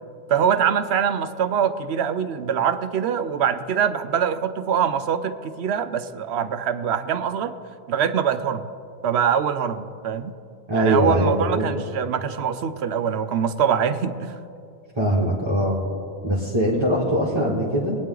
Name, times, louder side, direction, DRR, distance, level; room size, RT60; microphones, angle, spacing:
voice 1, 0.3-7.5 7.9-8.6 9.0-10.3 10.7-14.4, right 8 dB, 85° right, 11 dB, 0.9 m, -23 dB
voice 2, 10.7-11.7 15.0-15.8 16.2-18.0, equal, 25° right, -6 dB, 1.7 m, -21 dB
22.0 x 9.2 x 3.8 m, 2.4 s
omnidirectional pair, 1.1 m